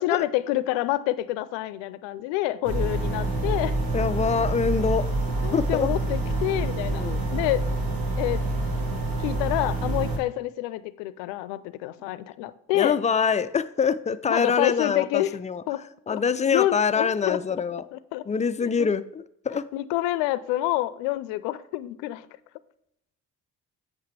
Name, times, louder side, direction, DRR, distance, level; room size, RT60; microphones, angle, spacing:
voice 1, 0.0-3.7 5.4-7.0 7.3-7.7 8.2-8.4 9.2-13.0 14.3-15.4 15.7-15.9 16.1-16.2 16.5-17.4 17.9-18.2 18.6-18.9 19.5-22.3, left 16 dB, 80° left, 16 dB, 0.5 m, -27 dB
sound 1, 2.6-10.2, right 2 dB, 55° right, 2.0 m, -27 dB
voice 2, 3.9-5.1 5.5-5.9 6.9-7.3 12.7-15.6 16.1-17.8 18.3-19.7, left 6 dB, 20° left, 14 dB, 0.3 m, -25 dB
7.9 x 5.8 x 3.3 m, 0.77 s
hypercardioid pair, 50°, 43 cm